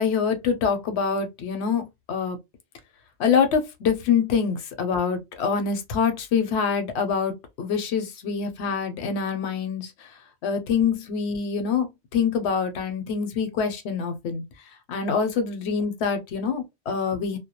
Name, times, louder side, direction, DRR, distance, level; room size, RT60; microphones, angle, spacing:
voice 1, 0.0-2.4 3.2-10.1 10.4-14.4 14.9-17.4, left 6 dB, 85° left, 0.9 m, -25 dB
2.2 x 2.1 x 2.8 m
omnidirectional pair, 1.1 m